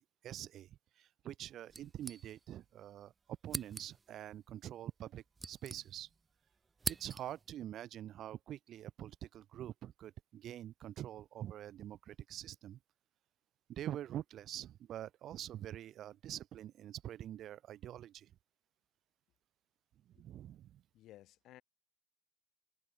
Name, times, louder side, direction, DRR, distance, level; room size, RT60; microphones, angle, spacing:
voice 1, 0.0-3.1 3.4-6.1 6.9-12.8 13.7-18.3 20.1-20.8, right 12 dB, 75° right, 0.9 m, -46 dB
sound 1, 1.7-2.7 3.0-3.1 3.5-4.2 5.0-6.3 6.5-7.5, right 4 dB, 30° right, 0.4 m, -44 dB
voice 2, 20.9-21.6, left 14 dB, 85° left, 4.5 m, -57 dB
cardioid pair, 90°, 0 cm